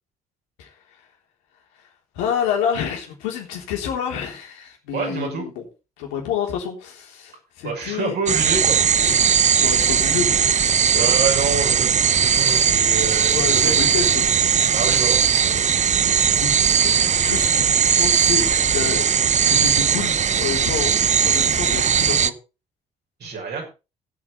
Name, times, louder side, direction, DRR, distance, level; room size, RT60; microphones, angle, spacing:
voice 1, 0.6-1.0 2.1-5.6 6.0-8.2 9.1-9.3 9.6-11.1 13.3-14.3 15.5-15.7 15.9-16.0 16.4-17.6 18.0-19.1 19.5-20.9 21.2-22.3, left 8 dB, 70° left, 1 dB, 3.7 m, -29 dB
voice 2, 4.9-5.5 7.6-8.8 10.9-13.7 14.7-15.2 23.2-23.7, right 4 dB, 55° right, 1 dB, 5.9 m, -27 dB
sound 1, 8.3-22.3, right 7 dB, 35° right, 0.8 m, -18 dB
17.5 x 8.5 x 4.3 m, 0.31 s
figure-of-eight pair, 45°, 20 cm